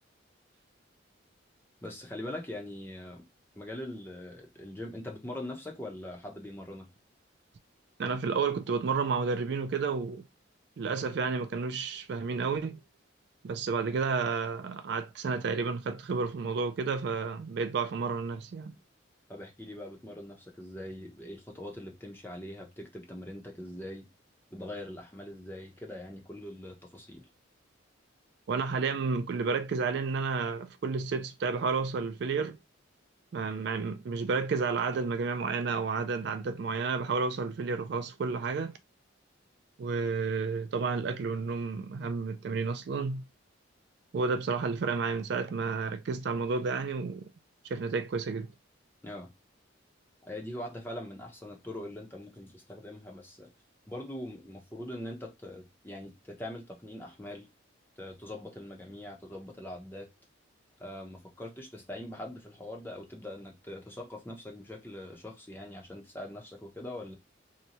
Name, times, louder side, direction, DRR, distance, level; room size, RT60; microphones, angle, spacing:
voice 1, 1.8-3.3 3.5-6.9 19.3-24.1 24.5-27.3 49.0-49.3 50.2-53.5 53.9-57.5 58.0-60.1 60.8-67.2, left 1 dB, 10° left, 0.8 m, -42 dB
voice 2, 8.0-10.3 10.8-12.8 13.4-18.7 28.5-32.6 33.3-38.8 39.8-43.2 44.1-47.3 47.6-48.5, right 4 dB, 60° right, 0.3 m, -31 dB
2.9 x 2.2 x 3.9 m
head